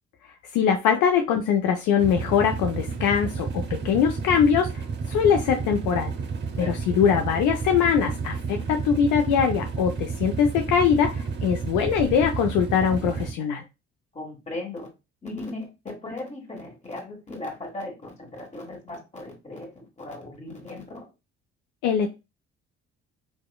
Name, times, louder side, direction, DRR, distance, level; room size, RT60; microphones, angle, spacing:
voice 1, 0.5-6.1 6.6-13.6 21.8-22.1, left 7 dB, 65° left, 4 dB, 0.5 m, -22 dB
sound 1, 2.0-13.3, right 5 dB, 35° right, 0.6 m, -31 dB
voice 2, 6.6-7.0 14.1-14.9 15.2-21.1, left 2 dB, 20° left, 0 dB, 1.4 m, -37 dB
2.8 x 2.1 x 2.2 m, 0.26 s
hypercardioid pair, 50°, 33 cm